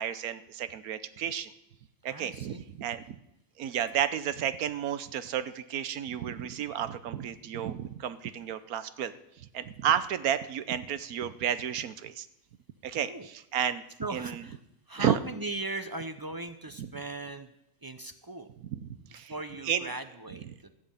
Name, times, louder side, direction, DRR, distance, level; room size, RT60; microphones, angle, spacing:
voice 1, 0.0-1.5 2.0-3.2 3.6-12.3 12.8-13.8 14.1-14.4 15.0-15.2 16.8-16.9 18.7-19.3 19.6-19.9 20.4-20.5, right 9 dB, 75° right, 13 dB, 1.3 m, -32 dB
voice 2, 2.1-2.6 12.9-13.3 14.0-14.6 14.9-17.5 17.8-18.5 19.0-20.7, right 2 dB, 35° right, 9 dB, 0.3 m, -39 dB
15.0 x 6.5 x 8.9 m, 0.83 s
omnidirectional pair, 1.6 m